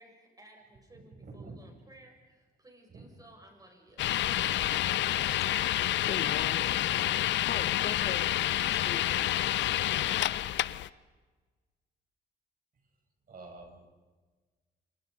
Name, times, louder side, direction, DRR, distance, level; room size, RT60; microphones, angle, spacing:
voice 1, 0.0-4.0, right 1 dB, 20° right, 2 dB, 7.4 m, -57 dB
voice 2, 1.2-1.6 2.9-3.1 13.3-13.9, right 3 dB, 50° right, 2 dB, 7.5 m, -47 dB
sound 1, 4.0-10.9, left 13 dB, 85° left, 0.7 m, -28 dB
voice 3, 6.0-7.1 7.5-8.4 8.7-9.7, left 8 dB, 55° left, 12 dB, 1.2 m, -41 dB
29.5 x 27.0 x 5.5 m, 1.4 s
cardioid pair, 100°, 18 cm